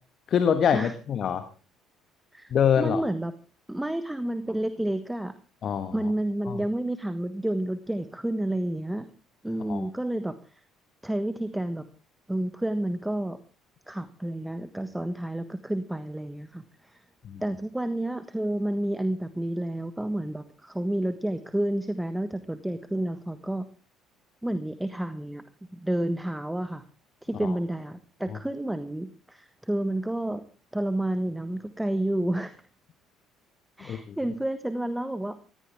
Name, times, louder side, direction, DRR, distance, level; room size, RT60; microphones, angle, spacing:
voice 1, 0.3-1.4 2.5-3.0 5.6-5.9 6.5-6.6 9.7-9.9 17.2-17.4 33.8-34.1, left 8 dB, 50° left, 10 dB, 1.4 m, -24 dB
voice 2, 2.3-3.3 3.7-5.3 5.9-9.1 9.4-10.6 11.0-11.8 12.3-13.4 13.9-17.0 17.4-23.7 24.4-25.4 25.7-26.8 27.2-30.4 30.7-32.6 33.8-35.4, right 1 dB, 5° right, 11 dB, 1.3 m, -30 dB
18.0 x 16.5 x 3.6 m, 0.35 s
figure-of-eight pair, 55°, 0 cm